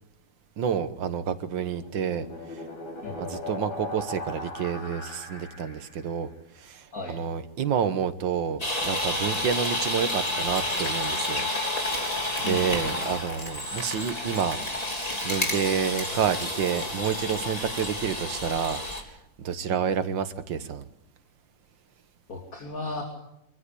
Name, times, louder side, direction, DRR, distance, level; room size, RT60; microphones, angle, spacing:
voice 1, 0.6-2.3 2.5-2.6 3.2-6.3 6.6-11.5 12.4-14.6 15.2-18.8 19.4-20.8, right 7 dB, 80° right, 2.0 m, -29 dB
sound 1, 1.4-6.1, left 2 dB, 90° left, 5.8 m, -39 dB
voice 2, 3.0-3.4 6.9-7.2 12.4-13.0 19.7-19.8 22.3-23.0, left 3 dB, 45° left, 3.3 m, -36 dB
sound 2, 8.6-19.0, left 1 dB, 20° left, 3.5 m, -30 dB
25.0 x 15.0 x 8.4 m
omnidirectional pair, 2.0 m